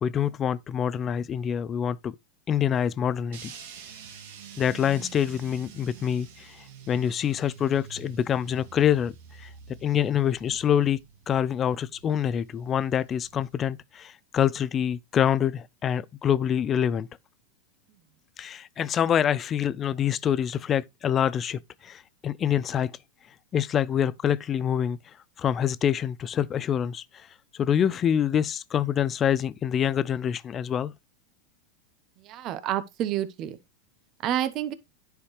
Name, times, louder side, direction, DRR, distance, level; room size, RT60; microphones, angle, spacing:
voice 1, 0.0-2.2 2.5-3.5 4.6-9.1 9.4-9.5 9.8-11.0 11.3-17.1 18.4-22.9 23.5-25.0 25.4-27.3 27.5-30.9, left 9 dB, 30° left, 0.4 m, -26 dB
sound 1, 3.3-13.5, right 8 dB, 70° right, 1.9 m, -47 dB
voice 2, 32.2-33.6 34.2-34.7, right 11 dB, 40° right, 0.9 m, -29 dB
9.9 x 4.8 x 3.2 m
hypercardioid pair, 120°, 0 cm